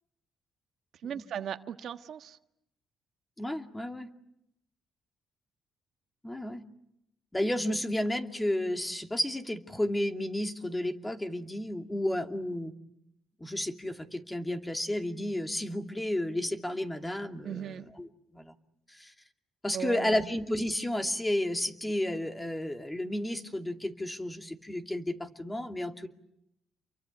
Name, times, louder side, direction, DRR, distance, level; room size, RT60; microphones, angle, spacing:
voice 1, 1.0-2.4 17.4-17.9 19.7-20.2, right 9 dB, 65° right, 8 dB, 1.5 m, -37 dB
voice 2, 3.4-4.1 6.2-6.6 7.3-12.7 13.4-18.5 18.9-19.1 19.6-26.1, left 1 dB, 10° left, 5 dB, 2.5 m, -32 dB
30.0 x 23.5 x 8.4 m, 0.81 s
cardioid pair, 90°, 0 cm